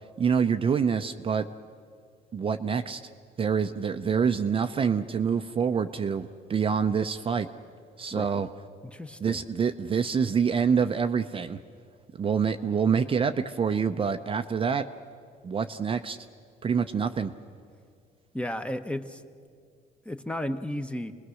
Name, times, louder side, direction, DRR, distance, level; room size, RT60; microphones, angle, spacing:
voice 1, 0.2-1.4 2.3-3.0 3.4-7.5 8.0-8.5 9.2-11.6 12.2-14.8 15.4-16.2 16.6-17.3, right 6 dB, 30° right, 8 dB, 0.6 m, -26 dB
voice 2, 8.1-8.4 8.8-9.4 18.3-19.2 20.0-21.1, left 1 dB, 5° left, 8 dB, 1.0 m, -33 dB
28.5 x 20.5 x 6.3 m, 2.2 s
cardioid pair, 110°, 17 cm